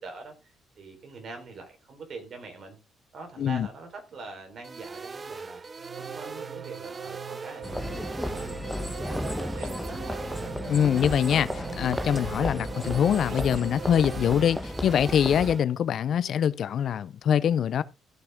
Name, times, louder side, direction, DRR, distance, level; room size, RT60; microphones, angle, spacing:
voice 1, 0.0-2.8 3.1-5.6 6.0-8.5 8.9-10.5, right 3 dB, 55° right, 4.0 m, -44 dB
sound 1, 4.6-15.6, right 4 dB, 35° right, 0.4 m, -41 dB
sound 2, 5.8-14.6, right 8 dB, 85° right, 0.8 m, -42 dB
sound 3, 7.6-15.6, left 1 dB, 5° left, 1.1 m, -34 dB
voice 2, 10.7-17.8, left 9 dB, 65° left, 0.6 m, -24 dB
14.5 x 6.3 x 3.6 m
cardioid pair, 90°, 0 cm